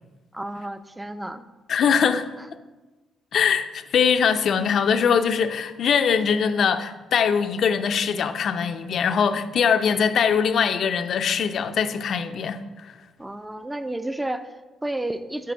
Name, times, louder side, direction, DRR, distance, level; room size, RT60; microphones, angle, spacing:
voice 1, 0.3-1.4 2.4-2.5 13.2-15.5, right 1 dB, 10° right, 0.5 m, -31 dB
voice 2, 1.7-2.3 3.3-12.6, left 7 dB, 60° left, 0.5 m, -22 dB
7.5 x 4.5 x 7.0 m
cardioid pair, 90°, 0 cm